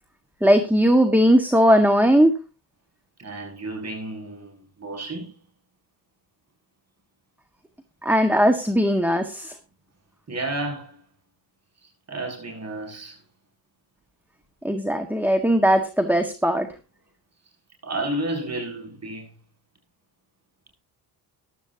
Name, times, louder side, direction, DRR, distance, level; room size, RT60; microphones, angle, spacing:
voice 1, 0.4-2.3 8.0-9.5 14.6-16.7, equal, 5° right, 1.8 m, -18 dB
voice 2, 3.2-5.4 10.3-11.0 11.8-13.2 17.8-19.4, right 2 dB, 40° right, 7.5 m, -32 dB
15.0 x 12.5 x 2.9 m
cardioid pair, 80°, 42 cm